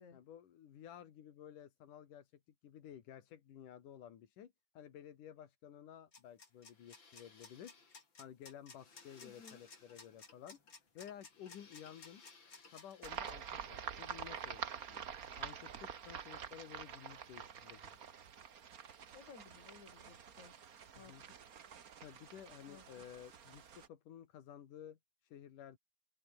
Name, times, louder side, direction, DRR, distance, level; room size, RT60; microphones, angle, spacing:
voice 1, 0.1-7.8 8.2-12.2 12.7-15.1 15.4-18.0 20.9-21.2 22.0-25.8, left 10 dB, 80° left, 3.5 m, -54 dB
sound 1, 6.1-13.3, left 4 dB, 35° left, 4.3 m, -58 dB
voice 2, 9.2-9.6 19.1-20.5 21.0-21.5 22.7-23.1, left 6 dB, 65° left, 5.0 m, -58 dB
sound 2, 13.0-23.9, right 7 dB, 60° right, 0.9 m, -48 dB
omnidirectional pair, 3.6 m